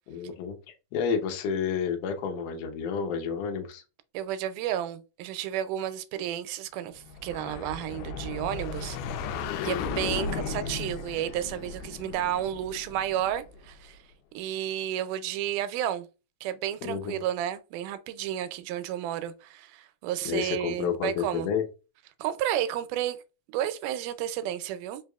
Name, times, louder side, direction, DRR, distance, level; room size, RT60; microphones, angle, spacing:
voice 1, 0.1-3.8 16.8-17.2 20.2-21.6, left 7 dB, 70° left, 1.7 m, -30 dB
voice 2, 4.1-9.0 9.6-14.0 14.4-16.1 16.4-21.5 22.2-23.2 23.5-25.0, right 11 dB, 90° right, 2.1 m, -32 dB
sound 1, 7.1-13.7, left 5 dB, 90° left, 2.1 m, -35 dB
4.5 x 3.4 x 2.3 m
omnidirectional pair, 3.6 m